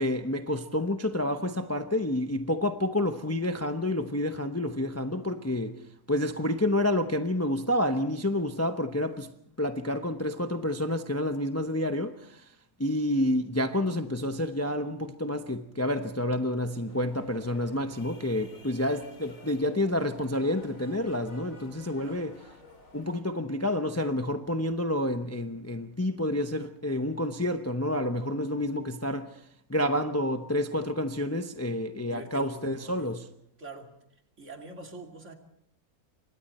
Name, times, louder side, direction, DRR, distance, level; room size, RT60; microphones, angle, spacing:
voice 1, 0.0-5.8 6.1-9.3 9.6-12.4 12.8-22.3 22.9-29.4 29.7-33.3, left 1 dB, 15° left, 0.8 m, -29 dB
sound 1, 16.9-23.2, left 2 dB, 65° left, 4.1 m, -52 dB
voice 2, 32.0-33.2 33.6-34.0 34.4-35.3, right 2 dB, 55° right, 2.9 m, -44 dB
27.5 x 25.0 x 4.3 m
omnidirectional pair, 1.5 m